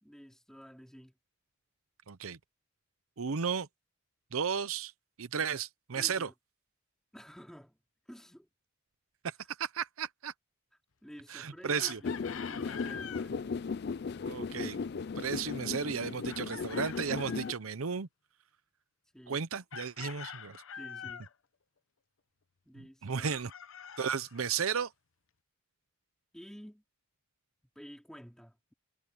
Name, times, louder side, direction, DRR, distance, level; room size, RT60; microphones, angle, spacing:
voice 1, 0.0-1.2 5.9-6.3 7.1-7.8 8.1-8.5 11.0-13.6 19.1-19.4 20.7-21.3 22.6-23.4 26.3-26.8 27.7-28.7, equal, ahead, 3.3 m, -51 dB
voice 2, 2.1-2.4 3.2-3.7 4.3-4.9 5.2-6.3 9.2-9.3 9.6-10.3 11.3-12.0 14.2-14.8 15.2-18.1 19.3-20.6 23.0-23.5 24.0-24.9, right 6 dB, 80° right, 0.7 m, -34 dB
Chicken rooster, 11.8-13.3 16.3-17.6 19.7-21.3 23.2-24.8, left 7 dB, 70° left, 0.8 m, -45 dB
sound 1, 12.0-17.5, left 5 dB, 50° left, 0.4 m, -36 dB
head